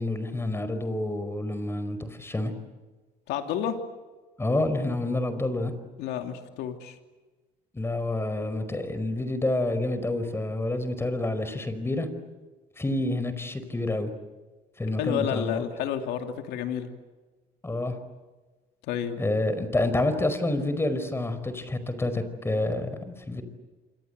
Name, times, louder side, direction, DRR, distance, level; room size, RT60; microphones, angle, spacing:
voice 1, 0.0-2.5 4.4-5.7 7.7-12.1 12.8-14.1 14.8-15.6 17.6-18.0 19.2-23.4, left 2 dB, 15° left, 11 dB, 4.8 m, -28 dB
voice 2, 3.3-3.8 6.0-7.0 15.0-16.9 18.9-19.2, left 9 dB, 90° left, 6 dB, 2.7 m, -30 dB
27.5 x 26.5 x 8.1 m, 1.3 s
cardioid pair, 110°, 17 cm